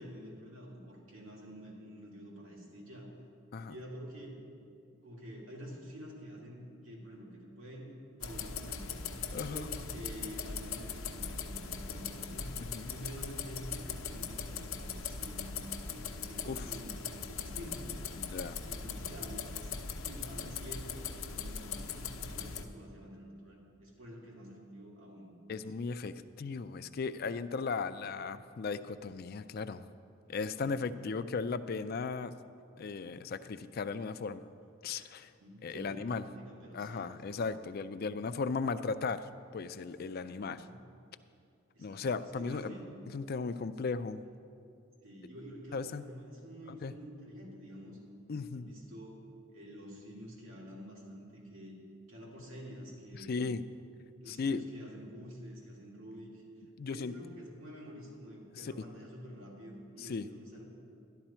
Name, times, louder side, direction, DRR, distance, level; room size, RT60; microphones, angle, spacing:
voice 1, 0.0-3.1 3.7-4.4 5.0-9.0 9.5-12.5 12.9-18.0 18.6-19.7 20.0-25.7 30.5-30.8 35.4-37.3 40.4-40.8 41.7-42.1 42.3-42.9 45.0-48.0 48.5-49.2 49.5-53.5 54.2-56.4 56.9-60.7, equal, 85° right, -3 dB, 2.6 m, -48 dB
sound 1, 8.2-22.6, left 5 dB, 85° left, 0.7 m, -40 dB
voice 2, 9.3-9.7 12.6-12.9 16.5-16.7 18.2-18.6 25.5-29.8 30.3-32.3 32.8-34.4 34.8-35.3 35.6-36.2 36.7-40.6 41.8-42.7 43.1-44.2 45.7-46.1 46.7-46.9 48.3-48.7 53.1-53.6 54.3-54.6 56.8-57.1 58.5-58.7 60.0-60.3, left 4 dB, 50° left, 13 dB, 0.4 m, -36 dB
11.5 x 11.5 x 4.4 m, 2.5 s
head